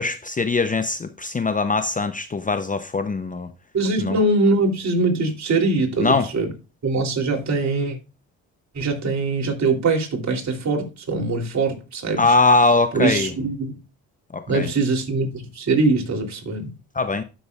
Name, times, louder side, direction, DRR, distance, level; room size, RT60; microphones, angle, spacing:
voice 1, 0.0-3.5 4.0-4.2 6.0-6.3 12.2-13.3 14.3-14.7 16.9-17.2, left 3 dB, 20° left, 0.7 m, -21 dB
voice 2, 3.7-6.5 6.8-8.0 8.7-12.2 12.9-13.7 14.5-16.7, right 3 dB, 50° right, 3.1 m, -22 dB
12.5 x 6.2 x 2.4 m
supercardioid pair, 80°, 36 cm